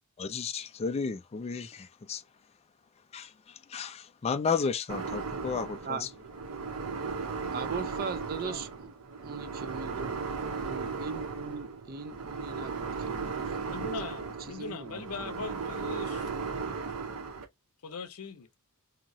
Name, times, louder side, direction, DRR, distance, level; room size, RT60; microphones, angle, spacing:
voice 1, 0.2-2.2 3.1-6.1, left 5 dB, 30° left, 0.3 m, -33 dB
sound 1, 4.9-17.4, right 5 dB, 90° right, 0.7 m, -36 dB
voice 2, 7.5-8.9 9.2-10.1 10.6-13.8 14.5-15.3, right 5 dB, 40° right, 0.4 m, -39 dB
voice 3, 13.6-16.3 17.8-18.5, left 4 dB, 75° left, 0.6 m, -40 dB
2.9 x 2.7 x 2.6 m
head